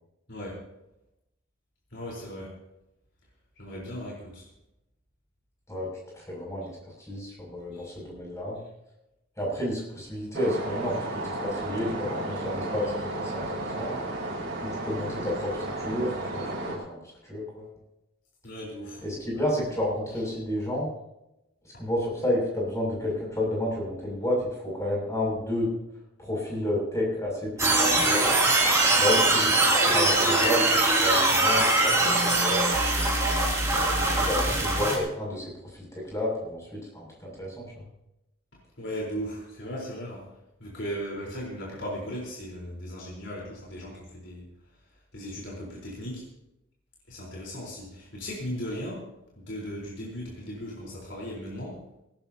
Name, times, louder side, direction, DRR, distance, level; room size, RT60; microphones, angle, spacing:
voice 1, 0.3-0.6 1.9-2.6 3.6-4.5 7.7-7.9 18.4-19.0 38.8-40.3 40.6-44.5 45.1-46.2 47.1-49.1 49.4-51.8, equal, 60° left, -4 dB, 4.2 m, -37 dB
voice 2, 6.1-8.6 9.4-11.0 11.4-13.9 14.6-17.7 19.0-20.9 21.8-25.7 26.2-28.2 29.0-31.9 32.3-32.7 33.9-37.9, left 1 dB, 15° left, -3 dB, 6.8 m, -31 dB
sound 1, 10.3-16.7, right 2 dB, 55° right, 5.2 m, -33 dB
sound 2, 27.6-35.0, right 2 dB, 15° right, 2.9 m, -22 dB
18.0 x 18.0 x 2.9 m, 0.88 s
head